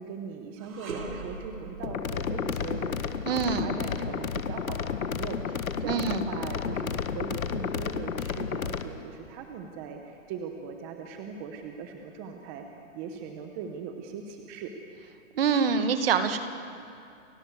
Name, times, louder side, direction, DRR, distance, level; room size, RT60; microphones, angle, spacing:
voice 1, 0.0-12.6 12.9-14.7, right 6 dB, 15° right, 4 dB, 0.9 m, -40 dB
sound 1, 0.6-9.8 10.2-10.4 11.3-12.1, right 3 dB, 85° right, 4.6 m, -45 dB
sound 2, 1.8-8.8, left 6 dB, 85° left, 1.7 m, -32 dB
voice 2, 3.2-3.7 5.8-6.3 15.4-16.4, right 6 dB, 45° right, 9 dB, 1.9 m, -25 dB
29.5 x 16.0 x 8.1 m, 2.4 s
hypercardioid pair, 165°, 40 cm